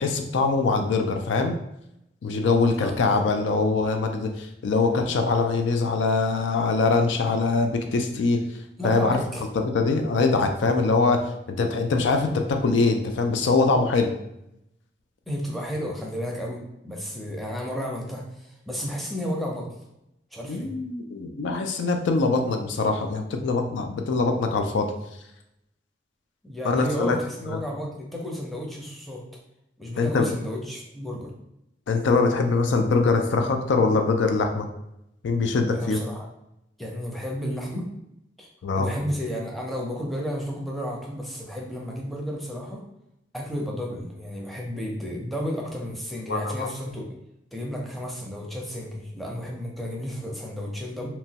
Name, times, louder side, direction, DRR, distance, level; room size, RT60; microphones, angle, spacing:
voice 1, 0.0-1.6 2.2-8.4 8.8-9.2 9.5-11.2 11.5-14.1 20.5-24.9 26.6-27.2 30.0-30.3 31.9-34.7 35.2-36.0 38.6-38.9 46.3-46.7, left 3 dB, 90° left, 5 dB, 0.4 m, -23 dB
voice 2, 2.8-3.3 8.8-9.4 15.3-19.7 20.3-20.7 26.4-29.2 29.8-31.3 35.7-36.3 36.8-37.9 38.4-38.5 38.7-42.8 43.3-47.0 47.5-51.1, equal, ahead, -2 dB, 0.5 m, -32 dB
2.9 x 2.2 x 2.8 m, 0.83 s
head